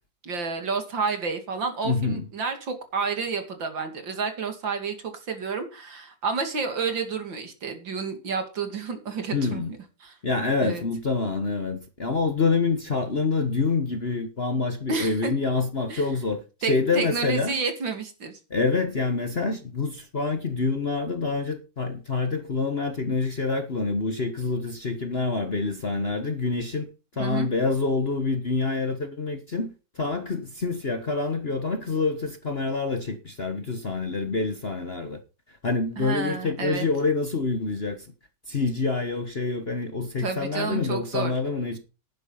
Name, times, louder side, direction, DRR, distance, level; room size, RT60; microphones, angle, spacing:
voice 1, 0.2-9.6 10.0-10.2 10.6-10.8 14.9-15.3 15.9-16.0 16.6-18.4 27.2-27.5 36.0-36.9 40.2-41.3, right 5 dB, 65° right, 3.2 m, -30 dB
voice 2, 1.8-2.2 9.3-9.7 10.2-17.6 18.5-26.9 27.2-35.2 35.6-38.1 38.5-41.8, left 3 dB, 35° left, 1.2 m, -26 dB
11.5 x 9.7 x 5.6 m
omnidirectional pair, 2.2 m